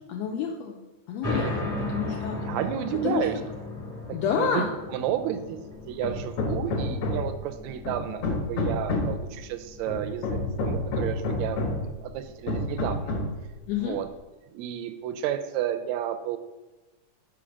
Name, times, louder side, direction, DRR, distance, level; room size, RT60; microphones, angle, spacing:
voice 1, 0.1-0.8 1.1-2.4 3.0-3.3 4.1-4.7 13.7-14.0, left 7 dB, 80° left, 2 dB, 1.6 m, -29 dB
sound 1, 1.2-12.3, left 2 dB, 25° left, 0.8 m, -37 dB
voice 2, 2.4-3.3 4.1-4.6 4.9-5.6 5.8-11.6 12.0-13.1 13.8-14.1 14.5-16.4, right 11 dB, 80° right, 9 dB, 1.7 m, -31 dB
Hammer, 6.0-7.4 7.8-9.2 9.9-11.9 12.5-13.4, left 2 dB, 65° left, 1.8 m, -29 dB
5.0 x 4.6 x 6.1 m, 1.1 s
omnidirectional pair, 3.3 m